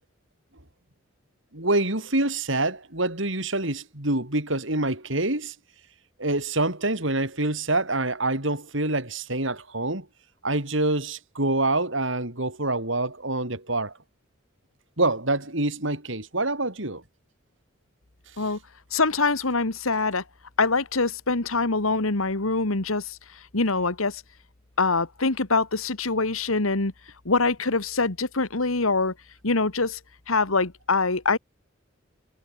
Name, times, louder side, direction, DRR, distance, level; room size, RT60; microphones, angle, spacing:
voice 1, 1.5-5.5 6.2-10.1 10.4-13.9 15.0-17.0, right 2 dB, 65° right, 5.0 m, -26 dB
voice 2, 18.9-20.2 20.6-23.2 23.5-24.2 24.8-26.9 27.3-29.1 29.4-30.0 30.3-31.4, left 3 dB, 90° left, 2.0 m, -24 dB
head